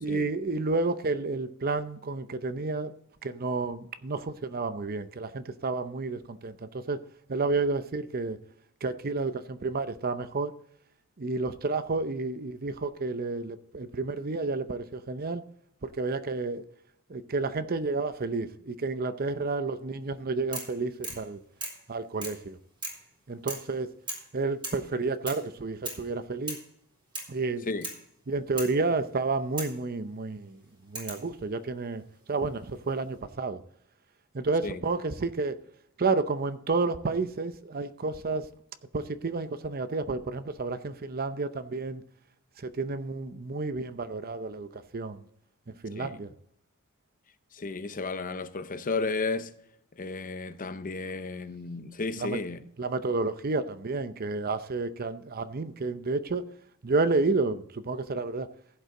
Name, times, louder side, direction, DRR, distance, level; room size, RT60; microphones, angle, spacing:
voice 1, 0.0-2.9 3.2-7.0 7.3-8.4 8.8-10.5 11.2-15.4 15.8-16.6 17.1-21.4 21.9-22.6 23.3-23.9 24.3-26.6 27.3-27.7 28.3-32.0 32.3-33.6 34.3-35.6 36.0-38.5 38.9-42.0 42.6-45.3 45.7-46.3 52.2-52.4 52.8-56.5 56.8-58.5, right 3 dB, 45° right, 0.7 m, -30 dB
sound 1, 20.5-20.8 21.0-21.3 21.6-21.8 22.2-22.4 22.8-23.1 23.5-23.7 24.1-24.3 24.6-24.9 25.3-25.5 25.9-26.1 26.5-26.7 27.1-27.4 27.8-28.0 28.6-28.8 29.6-29.8 31.0-31.3 32.4-32.9, right 2 dB, 25° right, 3.7 m, -38 dB
voice 2, 47.5-49.5 50.0-52.6, left 3 dB, 40° left, 0.7 m, -33 dB
15.0 x 8.1 x 3.8 m
head